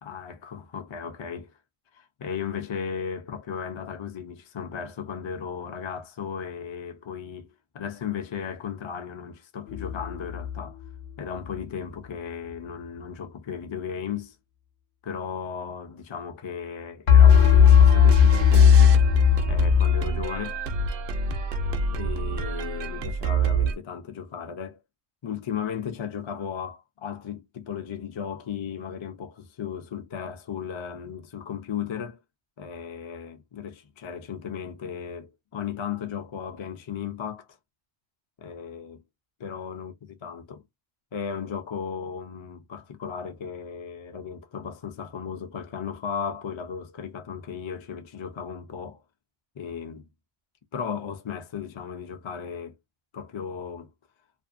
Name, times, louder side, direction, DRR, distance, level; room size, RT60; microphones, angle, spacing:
voice 1, 0.0-1.5 1.9-7.5 7.7-10.8 11.2-14.4 15.0-19.0 19.5-20.6 21.9-24.8 25.2-32.2 32.6-37.5 38.4-39.0 39.4-39.9 40.2-40.6 41.1-49.0 49.6-50.1 50.7-52.8 53.1-53.9, left 7 dB, 45° left, 0.3 m, -35 dB
sound 1, 9.7-10.6 17.1-20.1, left 8 dB, 75° left, 0.9 m, -16 dB
sound 2, 17.3-23.7, right 4 dB, 65° right, 0.7 m, -28 dB
2.6 x 2.4 x 2.4 m
omnidirectional pair, 1.1 m